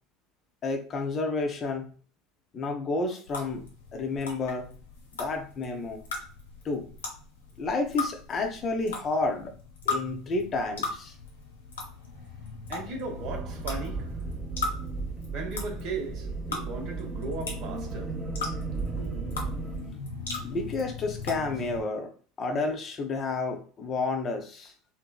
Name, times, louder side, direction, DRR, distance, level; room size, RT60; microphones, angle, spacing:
voice 1, 0.6-1.9 2.5-3.6 3.9-4.7 5.2-6.0 6.6-6.9 7.6-9.5 9.9-11.1 20.4-22.1 22.4-24.7, left 3 dB, 35° left, 0.6 m, -30 dB
sound 1, 3.3-21.8, left 4 dB, 75° left, 0.6 m, -39 dB
voice 2, 12.7-14.3 15.3-18.3, right 3 dB, 50° right, 0.8 m, -37 dB
sound 2, 13.2-19.9, right 3 dB, 15° right, 0.7 m, -35 dB
3.0 x 2.1 x 2.2 m
figure-of-eight pair, 70°, 0 cm